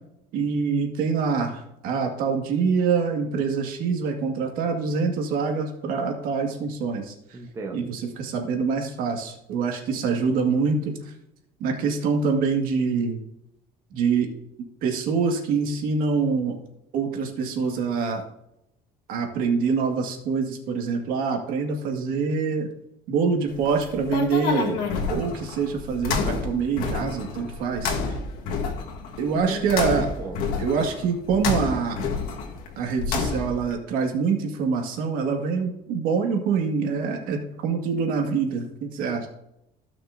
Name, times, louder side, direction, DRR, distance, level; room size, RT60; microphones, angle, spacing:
voice 1, 0.3-7.1 7.7-10.9 11.6-13.2 13.9-14.3 14.8-16.6 16.9-18.2 19.1-22.7 23.1-28.2 29.2-30.1 30.6-32.0 32.8-39.3, right 5 dB, 70° right, 3 dB, 2.0 m, -25 dB
voice 2, 7.3-7.8 29.3-30.6, right 3 dB, 20° right, 1 dB, 1.1 m, -36 dB
sound 1, 23.5-33.7, left 4 dB, 75° left, 1.6 m, -29 dB
16.5 x 6.0 x 2.7 m, 0.83 s
cardioid pair, 155°, 15 cm